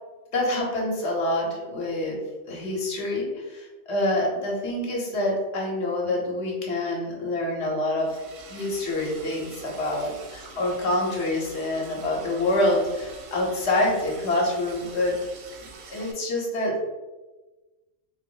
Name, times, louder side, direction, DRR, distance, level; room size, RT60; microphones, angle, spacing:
voice 1, 0.3-2.2 2.5-8.2 8.5-15.2 15.9-16.8, left 1 dB, 55° left, -2 dB, 1.1 m, -26 dB
Liquid, 8.0-16.1, right 4 dB, 60° right, 0.7 m, -45 dB
4.0 x 2.0 x 3.8 m, 1.2 s
omnidirectional pair, 1.5 m